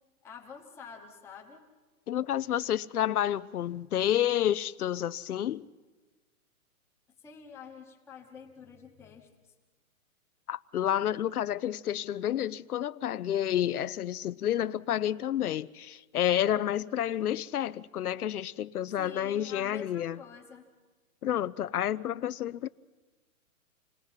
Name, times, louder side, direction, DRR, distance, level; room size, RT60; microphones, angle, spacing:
voice 1, 0.2-1.7 7.2-9.5 18.9-20.7, left 6 dB, 5° left, 0.9 m, -48 dB
voice 2, 2.1-5.7 10.5-20.2 21.2-22.7, left 11 dB, 85° left, 0.8 m, -30 dB
27.5 x 19.0 x 5.7 m
hypercardioid pair, 170°, 43 cm